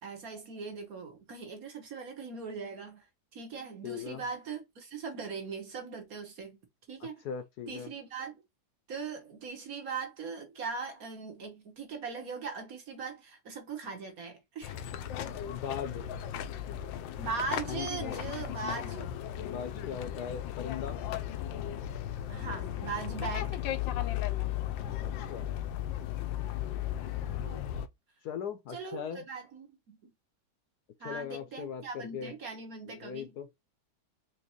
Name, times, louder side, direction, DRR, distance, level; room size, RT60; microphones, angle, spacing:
voice 1, 0.0-3.0 3.3-6.6 6.9-7.2 7.7-8.4 8.9-14.8 17.2-19.1 22.3-23.6 27.3-27.6 28.7-30.0 31.0-33.4, right 5 dB, 55° right, 1.5 m, -40 dB
voice 2, 3.8-4.2 7.2-7.9 15.5-16.1 19.4-21.0 25.0-25.5 28.2-29.2 31.0-32.3 32.9-33.5, left 7 dB, 70° left, 1.1 m, -39 dB
sound 1, 14.6-27.9, left 11 dB, 85° left, 1.3 m, -36 dB
4.5 x 2.9 x 2.9 m
omnidirectional pair, 2.0 m